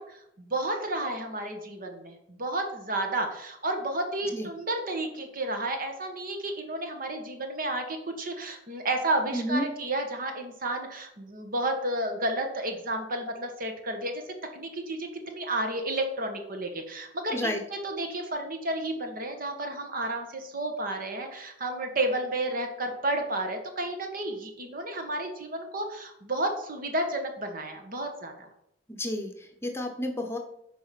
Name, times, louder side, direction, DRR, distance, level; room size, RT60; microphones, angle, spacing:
voice 1, 0.0-14.2 14.5-28.5, right 1 dB, 50° right, 5 dB, 1.6 m, -32 dB
voice 2, 9.3-9.7 17.3-17.6 28.9-30.4, left 1 dB, 15° left, 3 dB, 1.0 m, -31 dB
9.2 x 4.9 x 6.0 m, 0.78 s
head